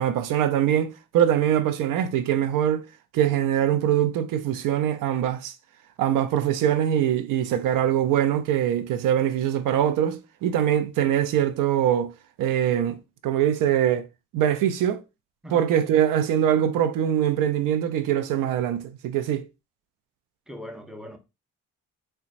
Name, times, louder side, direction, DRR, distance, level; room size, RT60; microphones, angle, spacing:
voice 1, 0.0-2.8 3.1-5.5 6.0-12.1 12.4-13.0 13.2-14.1 14.3-15.0 15.5-19.4, right 10 dB, 75° right, 0.6 m, -23 dB
voice 2, 20.5-21.2, equal, ahead, 0.7 m, -39 dB
3.8 x 2.3 x 2.5 m
supercardioid pair, 60°, 32 cm